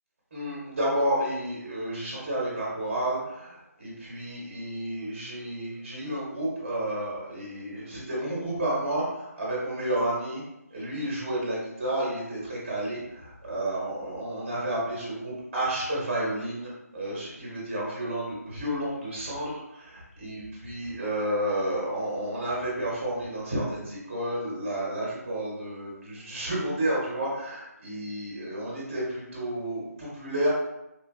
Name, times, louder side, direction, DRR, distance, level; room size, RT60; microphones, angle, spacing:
voice 1, 0.3-10.4 10.7-30.5, right 1 dB, 20° right, -6 dB, 0.8 m, -31 dB
3.2 x 2.3 x 2.2 m, 0.89 s
figure-of-eight pair, 175°, 9 cm